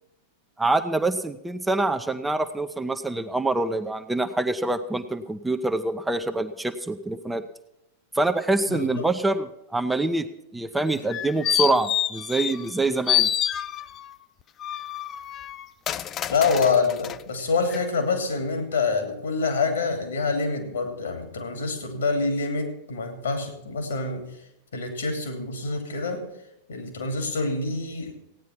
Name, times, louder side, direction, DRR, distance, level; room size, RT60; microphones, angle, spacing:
voice 1, 0.6-7.4 8.1-10.3 10.5-13.3, right 2 dB, 5° right, 7 dB, 0.7 m, -25 dB
voice 2, 8.7-9.1 16.3-24.3 24.7-26.3 26.7-28.1, left 4 dB, 70° left, 5 dB, 2.8 m, -26 dB
sound 1, 10.9-12.8 13.1-14.1 14.6-17.2 17.7-17.8, left 11 dB, 30° left, 0.4 m, -27 dB
16.0 x 9.4 x 5.9 m, 0.84 s
figure-of-eight pair, 90°, 0 cm